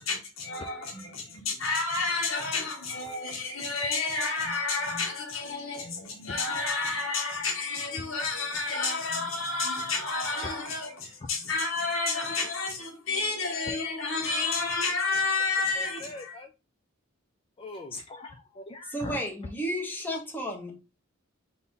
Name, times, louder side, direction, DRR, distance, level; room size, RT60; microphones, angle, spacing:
voice 1, 0.0-16.4, left 3 dB, 75° left, 1.2 m, -30 dB
voice 2, 15.8-16.5 17.6-19.1, left 2 dB, 25° left, 0.4 m, -42 dB
voice 3, 18.8-20.8, equal, 10° left, 1.0 m, -33 dB
4.1 x 2.7 x 3.7 m
head